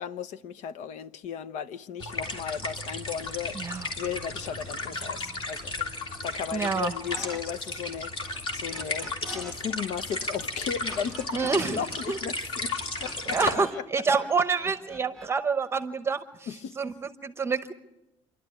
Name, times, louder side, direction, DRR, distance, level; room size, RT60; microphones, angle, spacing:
voice 1, 0.0-5.7 6.2-11.4 11.7-12.7 13.0-13.4 16.5-16.8, left 8 dB, 75° left, 0.8 m, -35 dB
sound 1, 2.0-13.5, left 2 dB, 45° left, 3.4 m, -34 dB
voice 2, 3.5-3.9 6.5-6.9 11.3-11.8 12.1-12.2 13.3-17.7, right 5 dB, 20° right, 0.9 m, -28 dB
sound 2, 7.1-7.4 7.7-9.5 9.8-13.8 14.1-15.3, right 1 dB, ahead, 1.8 m, -45 dB
28.5 x 12.0 x 9.3 m
cardioid pair, 145°, 12 cm